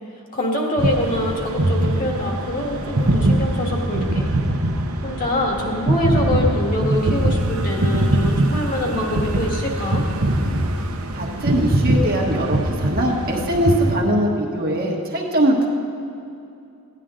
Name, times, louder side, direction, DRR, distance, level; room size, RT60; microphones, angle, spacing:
voice 1, 0.3-4.4 5.0-10.0, left 1 dB, 40° left, -1 dB, 1.7 m, -24 dB
sound 1, 0.8-13.9, right 1 dB, 70° right, 0.9 m, -22 dB
voice 2, 11.1-15.7, right 1 dB, 45° right, -1 dB, 1.3 m, -21 dB
16.0 x 10.0 x 3.8 m, 2.6 s
head